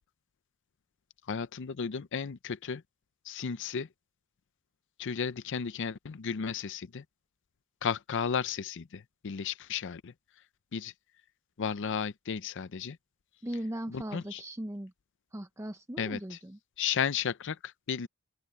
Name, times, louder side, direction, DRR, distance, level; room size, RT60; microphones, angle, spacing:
voice 1, 1.3-2.8 3.2-3.9 5.0-7.0 7.8-10.1 10.7-10.9 11.6-13.0 13.9-14.4 16.0-16.4 16.8-18.1, left 7 dB, 60° left, 0.5 m, -34 dB
voice 2, 13.4-14.9 15.3-16.6, right 1 dB, 15° right, 0.7 m, -38 dB
open air
head